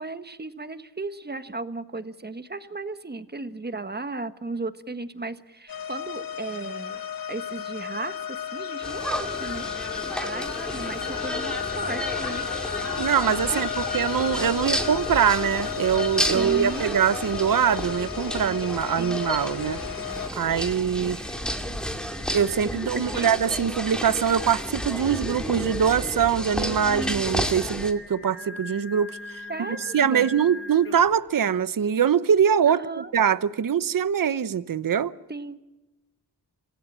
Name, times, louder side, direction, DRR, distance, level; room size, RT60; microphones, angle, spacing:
voice 1, 0.0-7.0 7.3-12.5 13.5-14.0 14.5-15.0 16.3-17.0 19.0-19.2 22.9-23.3 29.5-30.3 32.7-33.1 35.3-35.6, right 3 dB, 25° right, 1.4 m, -35 dB
sound 1, 5.7-20.3, left 9 dB, 55° left, 1.3 m, -33 dB
sound 2, 8.8-27.9, equal, ahead, 2.4 m, -32 dB
voice 2, 13.0-19.8 20.3-21.2 22.3-35.1, right 8 dB, 55° right, 0.9 m, -23 dB
Singing, 19.5-31.3, left 1 dB, 30° left, 5.0 m, -43 dB
27.0 x 16.5 x 7.5 m
wide cardioid pair, 80°, 41 cm